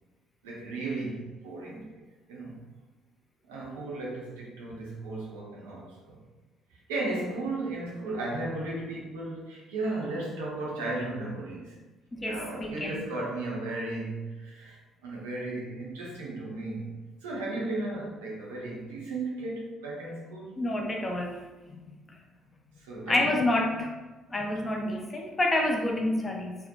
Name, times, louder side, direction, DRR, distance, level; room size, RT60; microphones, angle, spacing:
voice 1, 0.4-2.0 2.3-2.6 3.5-6.2 6.9-11.8 12.2-14.8 15.0-16.9 17.2-20.5 22.8-23.7, right 2 dB, 75° right, -4 dB, 0.5 m, -35 dB
voice 2, 12.1-13.0 20.6-21.4 21.7-21.8 23.1-23.9 24.3-26.6, left 1 dB, 25° left, 1 dB, 0.4 m, -28 dB
2.6 x 2.0 x 2.5 m, 1.2 s
figure-of-eight pair, 50°, 0 cm